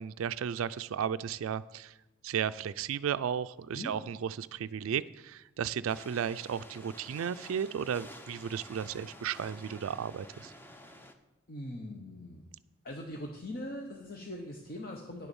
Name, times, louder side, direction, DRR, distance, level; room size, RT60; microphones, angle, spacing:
voice 1, 0.0-1.9 2.2-10.5, right 8 dB, 75° right, 12 dB, 0.3 m, -34 dB
sound 1, 5.9-11.1, left 1 dB, 10° left, 0.7 m, -50 dB
voice 2, 11.5-12.4 12.8-15.3, left 1 dB, 45° left, 2 dB, 1.0 m, -41 dB
10.0 x 6.9 x 7.1 m, 0.98 s
head